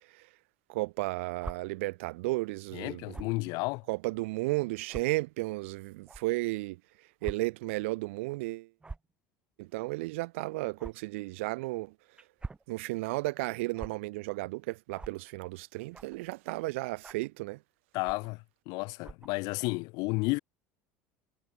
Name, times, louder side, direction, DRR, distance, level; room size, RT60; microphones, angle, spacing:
voice 1, 0.7-3.1 3.9-6.8 7.2-8.7 9.6-11.9 12.7-17.6, right 22 dB, 85° right, 4.2 m, -33 dB
sound 1, 1.4-1.6 3.1-3.4 4.1-4.2 4.9-5.0 6.1-6.2 7.2-7.4 7.7-7.8 8.8-9.1 10.8-10.9 12.2-12.7 13.8-13.9 14.9-15.2 15.9-16.2 17.0-17.3 18.0-18.3 19.0-19.3, right 3 dB, 15° right, 3.6 m, -42 dB
voice 2, 2.7-3.8 17.9-20.4, left 27 dB, 70° left, 4.0 m, -32 dB
supercardioid pair, 105°, 7 cm